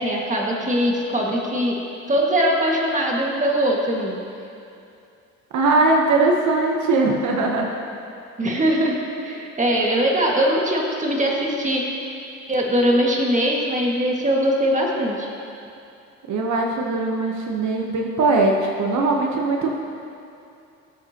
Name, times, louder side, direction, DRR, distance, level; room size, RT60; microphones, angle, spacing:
voice 1, 0.0-1.8 2.1-4.2 8.4-11.8 12.5-15.3, equal, 25° right, -2 dB, 1.9 m, -21 dB
voice 2, 5.5-7.7 16.3-19.8, right 3 dB, 70° right, 0 dB, 1.0 m, -20 dB
18.0 x 7.5 x 2.9 m, 2.6 s
cardioid pair, 90°, 30 cm